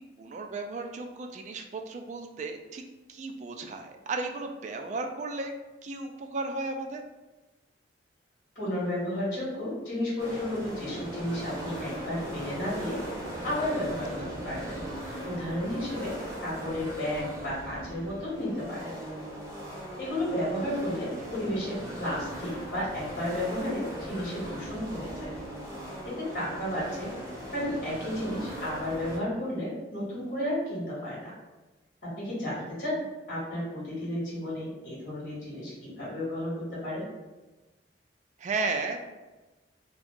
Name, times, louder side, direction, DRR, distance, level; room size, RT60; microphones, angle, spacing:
voice 1, 0.0-2.8 3.1-5.5 5.8-7.0 14.2-14.3 15.7-16.1 21.2-21.3 38.4-39.0, right 3 dB, 40° right, 5 dB, 0.3 m, -35 dB
voice 2, 8.5-14.8 15.2-16.1 16.4-18.9 20.0-25.3 26.0-27.1 27.5-31.3 32.0-37.0, left 1 dB, 50° left, -7 dB, 1.4 m, -33 dB
sound 1, 10.2-29.2, right 1 dB, 15° right, 0.8 m, -39 dB
2.6 x 2.3 x 3.7 m, 1.1 s
head